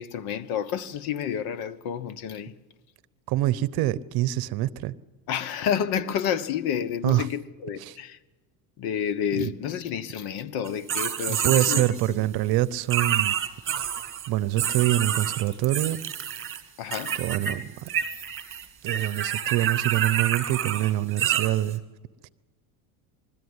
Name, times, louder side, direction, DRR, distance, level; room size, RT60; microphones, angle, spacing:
voice 1, 0.0-2.5 5.3-8.2 8.8-11.9 16.8-17.2, left 8 dB, 60° left, 1.2 m, -30 dB
voice 2, 3.3-4.9 7.0-7.3 7.8-8.0 9.3-9.5 11.3-13.4 14.3-16.0 17.2-17.7 18.8-21.8, right 15 dB, 55° right, 0.9 m, -25 dB
sound 1, 10.7-12.1 12.9-14.3 14.6-16.6 16.9-17.5 17.8-21.7, right 10 dB, 30° right, 2.2 m, -28 dB
22.0 x 14.0 x 9.7 m
supercardioid pair, 115°, 43 cm